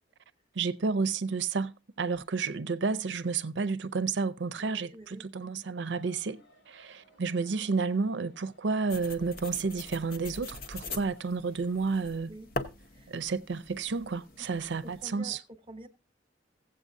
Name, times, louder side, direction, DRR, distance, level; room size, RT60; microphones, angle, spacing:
voice 1, 0.5-12.3 13.1-15.4, right 4 dB, 75° right, 0.6 m, -31 dB
voice 2, 4.6-5.3 12.3-12.5 12.9-13.1 14.4-14.5 14.8-15.9, right 1 dB, 30° right, 0.9 m, -48 dB
sound 1, 5.9-11.7, equal, 85° left, 3.5 m, -62 dB
sound 2, 8.9-15.1, left 3 dB, 50° left, 0.8 m, -42 dB
16.0 x 7.8 x 2.6 m
head